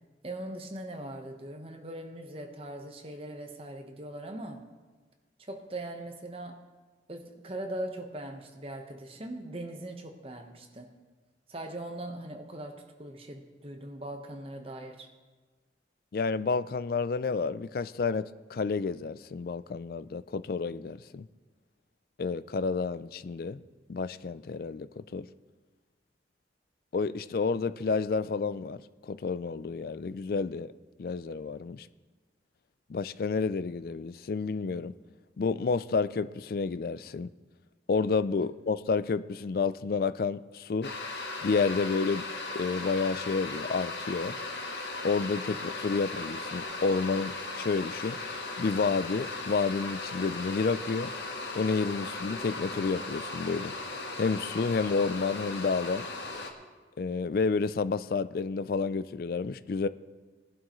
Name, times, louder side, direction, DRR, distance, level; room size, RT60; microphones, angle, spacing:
voice 1, 0.2-4.6 5.4-6.6 7.1-10.9 11.5-15.1, right 1 dB, 30° right, 1.1 m, -40 dB
voice 2, 16.1-21.3 22.2-23.6 23.9-25.3 26.9-30.7 31.0-31.9 32.9-34.9 35.4-37.3 37.9-40.9 41.4-42.2 42.5-44.3 45.0-48.2 48.6-51.1 51.5-53.7 54.2-56.1 57.0-59.9, left 4 dB, 50° left, 0.4 m, -30 dB
sound 1, 40.8-56.5, left 3 dB, 70° left, 1.3 m, -37 dB
19.0 x 11.0 x 3.1 m
head